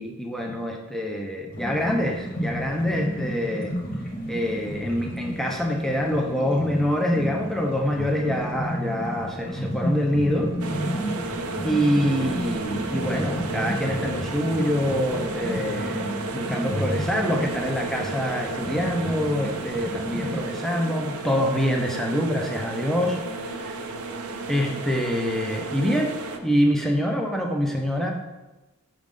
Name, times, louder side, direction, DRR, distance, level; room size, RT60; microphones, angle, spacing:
voice 1, 0.0-3.7 4.3-10.5 11.6-23.2 23.4-23.9 24.5-28.1, equal, ahead, 1 dB, 0.6 m, -25 dB
sound 1, 1.5-20.4, equal, 40° left, 1.0 m, -32 dB
sound 2, 10.6-26.4, right 3 dB, 80° right, 0.6 m, -33 dB
6.2 x 3.5 x 5.3 m, 1.1 s
head